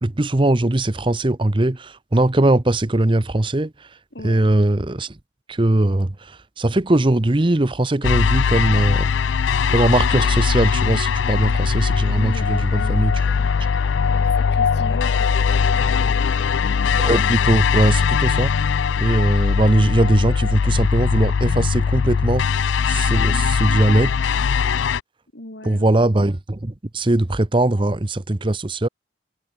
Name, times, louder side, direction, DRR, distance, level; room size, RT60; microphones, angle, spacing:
voice 1, 0.0-3.9 4.2-5.2 5.5-9.1 9.7-13.1 17.0-18.5 19.0-22.5 22.9-24.1 25.6-28.9, right 1 dB, 25° right, 0.8 m, -20 dB
voice 2, 4.1-4.5 12.1-13.5 14.1-16.5 23.1-23.5 25.3-26.0, left 1 dB, 65° left, 3.8 m, -38 dB
sound 1, 8.0-25.0, left 6 dB, 90° left, 0.4 m, -20 dB
head